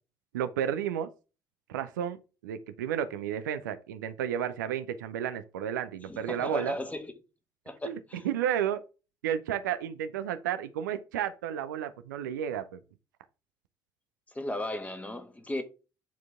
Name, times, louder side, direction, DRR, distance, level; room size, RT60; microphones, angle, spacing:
voice 1, 0.3-1.1 1.7-2.2 2.4-6.7 7.8-8.0 8.2-8.8 9.2-12.8, right 9 dB, 70° right, 0.6 m, -32 dB
voice 2, 6.1-7.1 7.6-8.3 14.3-15.6, left 1 dB, 15° left, 1.5 m, -35 dB
9.2 x 4.6 x 3.6 m
figure-of-eight pair, 50°, 10 cm